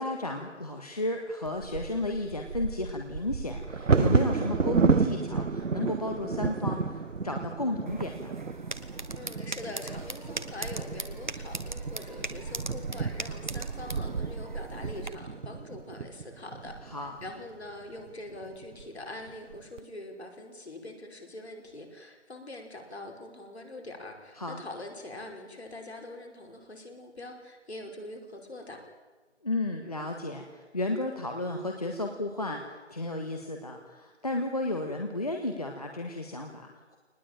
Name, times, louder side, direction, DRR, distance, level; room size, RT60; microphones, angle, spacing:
voice 1, 0.0-8.4 16.9-17.1 24.4-24.6 29.4-32.6 32.9-37.0, left 2 dB, 30° left, 3 dB, 1.5 m, -33 dB
Bird vocalization bird call bird song / Wind / Thunder, 1.5-17.3 18.0-18.1 18.4-18.8 19.3-19.8, right 5 dB, 85° right, 1.1 m, -31 dB
sound 1, 7.9-15.1, right 2 dB, 40° right, 1.4 m, -40 dB
voice 2, 9.1-28.8, left 2 dB, 60° left, 2 dB, 5.2 m, -43 dB
24.0 x 20.0 x 9.1 m, 1.3 s
figure-of-eight pair, 180°, 37 cm